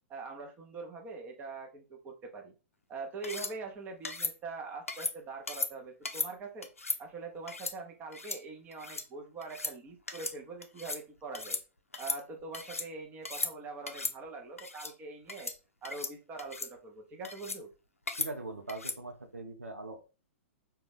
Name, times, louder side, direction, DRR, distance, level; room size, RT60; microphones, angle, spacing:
voice 1, 0.1-2.5 2.9-6.7 7.0-11.6 12.0-15.5 15.8-17.7, right 3 dB, 20° right, 3 dB, 0.7 m, -43 dB
sound 1, 3.2-3.5 4.0-4.3 4.9-5.1 5.5-5.7 6.0-6.3 6.6-7.0 7.5-7.7 8.1-8.4 8.7-9.0 9.4-9.7 10.1-10.4 10.6-11.0 11.3-11.6 11.9-12.9 13.2-13.5 13.9-14.1 14.6-14.9 15.3-15.6 15.8-16.1 16.4-16.7 17.2-17.6 18.1-18.3 18.7-19.0, left 3 dB, 80° left, 0.5 m, -36 dB
voice 2, 18.2-20.0, right 2 dB, 85° right, 4 dB, 0.6 m, -41 dB
3.9 x 2.3 x 3.3 m, 0.31 s
figure-of-eight pair, 105°, 7 cm